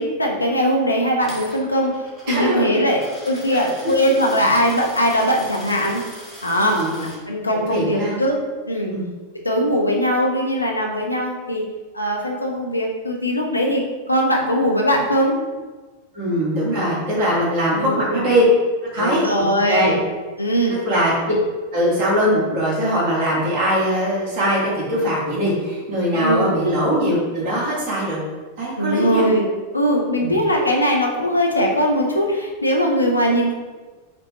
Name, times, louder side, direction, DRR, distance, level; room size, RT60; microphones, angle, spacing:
voice 1, 0.0-1.9 2.3-6.0 6.4-6.8 7.3-8.4 8.7-8.9 9.4-11.6 11.9-15.4 17.7-18.3 19.0-20.0 20.4-20.8 26.1-26.5 28.8-33.5, equal, 85° left, 0 dB, 0.5 m, -20 dB
Coin (dropping), 1.2-7.2, right 1 dB, 20° right, 1.0 m, -41 dB
voice 2, 2.3-2.9 3.5-3.9 6.6-7.1 7.5-8.2 8.9-9.0 16.1-18.4 18.9-19.9 20.7-21.1 21.7-28.2 28.6-29.3 30.2-30.3, equal, 45° right, -5 dB, 1.4 m, -21 dB
5.1 x 2.1 x 2.8 m, 1.3 s
figure-of-eight pair, 90°, 0 cm